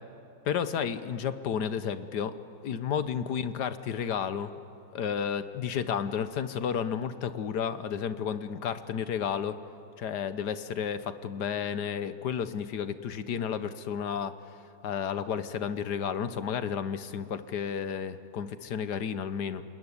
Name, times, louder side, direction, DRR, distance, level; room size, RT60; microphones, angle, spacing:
voice 1, 0.5-2.4 2.6-4.6 4.9-9.6 10.0-14.3 14.8-19.6, left 7 dB, 85° left, 12 dB, 1.6 m, -32 dB
27.5 x 21.5 x 9.9 m, 2.6 s
omnidirectional pair, 1.7 m